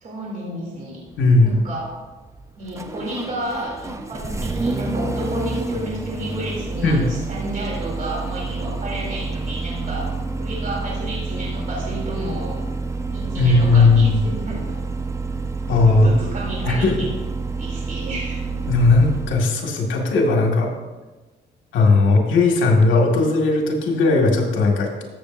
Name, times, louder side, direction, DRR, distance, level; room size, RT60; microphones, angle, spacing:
voice 1, 0.0-1.0 1.4-1.9 2.6-12.6 13.1-14.7 15.9-17.1 17.5-18.6, right 1 dB, 45° right, -4 dB, 3.0 m, -31 dB
Engine starting, 1.1-19.5, right 3 dB, 15° right, 0.7 m, -28 dB
voice 2, 1.2-1.6 6.8-7.1 13.4-14.2 15.7-16.1 16.7-17.1 18.7-20.7 21.7-25.0, left 3 dB, 80° left, 0 dB, 2.0 m, -17 dB
13.5 x 7.8 x 2.6 m, 1.2 s
cardioid pair, 90°, 20 cm